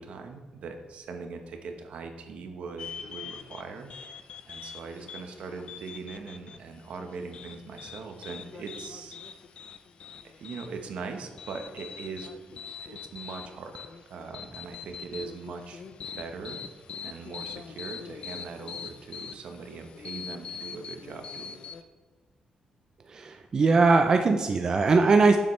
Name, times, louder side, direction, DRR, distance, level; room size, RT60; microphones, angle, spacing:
voice 1, 0.0-3.9 4.5-9.2 10.2-16.6 17.0-21.6, right 4 dB, 65° right, 5 dB, 1.0 m, -41 dB
sound 1, 2.8-21.8, left 6 dB, 50° left, 0.4 m, -43 dB
voice 2, 23.1-25.4, right 4 dB, 30° right, 5 dB, 0.4 m, -21 dB
9.8 x 7.2 x 3.2 m, 1.3 s
wide cardioid pair, 180°, 2 cm